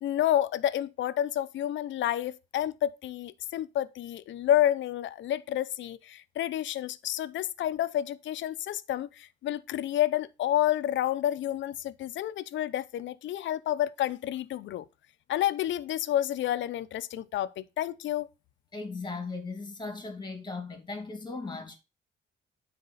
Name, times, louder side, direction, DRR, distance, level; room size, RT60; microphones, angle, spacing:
voice 1, 0.0-14.9 15.3-18.3, left 12 dB, 70° left, 0.7 m, -29 dB
voice 2, 18.7-21.8, left 3 dB, 20° left, 2.4 m, -37 dB
9.5 x 4.3 x 4.0 m
cardioid pair, 90°, 20 cm